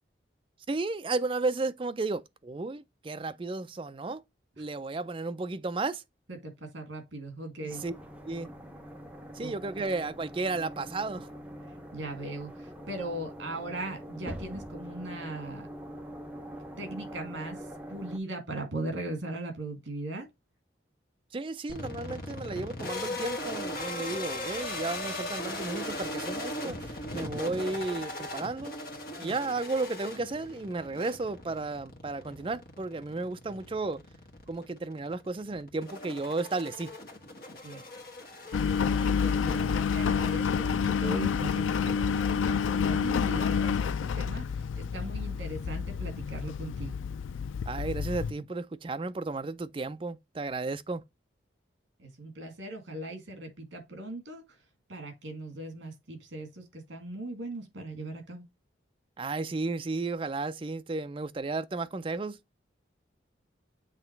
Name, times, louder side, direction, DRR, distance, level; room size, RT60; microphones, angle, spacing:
voice 1, 0.7-4.2 4.6-6.0 7.6-7.9 8.2-8.5 9.3-11.3 21.3-28.7 29.2-34.0 34.5-36.9 47.7-51.0 59.2-62.4, right 3 dB, 25° right, 0.4 m, -33 dB
voice 2, 6.3-7.8 9.4-9.5 11.9-15.7 16.8-17.6 17.9-20.3 29.2-29.3 37.6-37.8 38.8-44.4 44.8-47.0 48.4-48.5 52.0-54.6 54.9-58.4, right 1 dB, 70° right, 2.1 m, -39 dB
sound 1, 7.7-18.2, equal, 5° right, 0.8 m, -44 dB
sound 2, 21.7-40.9, left 1 dB, 50° left, 1.3 m, -39 dB
Engine, 38.5-48.3, left 6 dB, 85° left, 0.4 m, -29 dB
7.6 x 3.0 x 4.5 m
head